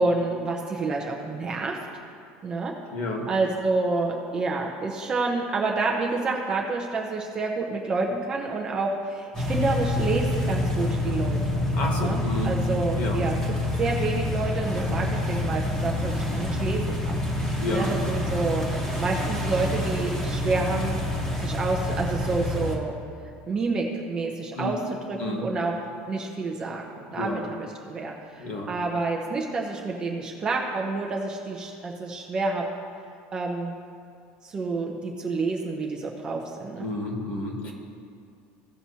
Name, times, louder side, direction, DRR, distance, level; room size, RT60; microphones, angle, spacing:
voice 1, 0.0-1.8 2.4-2.7 3.3-11.6 12.0-18.6 19.0-21.0 21.4-22.9 23.5-24.8 25.1-25.7 26.1-32.6 33.3-33.7 34.4-36.9, right 3 dB, 20° right, 0 dB, 0.7 m, -28 dB
voice 2, 2.9-3.2 11.7-12.5 13.0-13.2 17.6-17.9 24.5-24.7 25.2-25.4 27.1-27.4 28.4-28.7 36.8-37.7, left 2 dB, 35° left, 1 dB, 1.5 m, -30 dB
sound 1, 9.3-22.8, left 1 dB, 15° left, 1.1 m, -27 dB
16.5 x 5.9 x 2.8 m, 2.3 s
cardioid pair, 180°, 4 cm